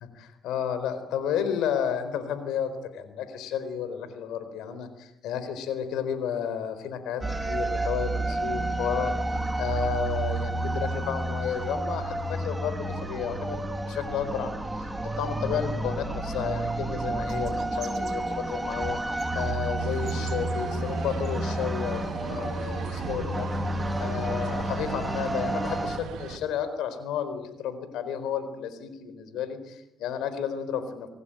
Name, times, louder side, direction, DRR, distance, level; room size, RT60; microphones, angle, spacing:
voice 1, 0.2-9.1 9.6-13.6 13.9-14.9 15.2-19.0 19.3-23.5 24.0-31.1, left 8 dB, 90° left, 11 dB, 4.3 m, -32 dB
sound 1, 7.2-26.0, right 2 dB, 15° right, 3.2 m, -30 dB
sound 2, 17.2-22.5, right 5 dB, 60° right, 4.6 m, -50 dB
sound 3, 19.8-26.4, right 6 dB, 85° right, 2.7 m, -38 dB
26.5 x 18.5 x 9.1 m, 0.87 s
cardioid pair, 90°, 0 cm